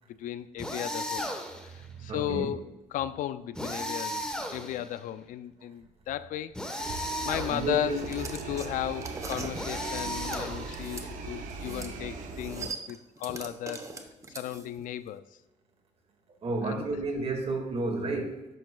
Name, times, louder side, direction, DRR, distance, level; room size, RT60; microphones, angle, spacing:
voice 1, 0.2-1.3 1.6-4.2 4.5-6.6 6.9-13.9 14.3-15.2 16.6-16.9, left 12 dB, 80° left, 0.4 m, -35 dB
sound 1, 0.6-1.7 3.5-5.0 6.5-7.8 9.5-10.9, equal, 5° left, 1.1 m, -35 dB
voice 2, 1.8-2.5 7.5-8.0 16.4-18.5, right 2 dB, 50° right, 1.9 m, -31 dB
sound 2, 6.8-12.7, right 4 dB, 80° right, 0.9 m, -39 dB
sound 3, 7.9-11.1 11.5-11.9 12.2-14.8, right 3 dB, 25° right, 0.8 m, -41 dB
10.5 x 6.4 x 2.3 m
cardioid pair, 100°, 13 cm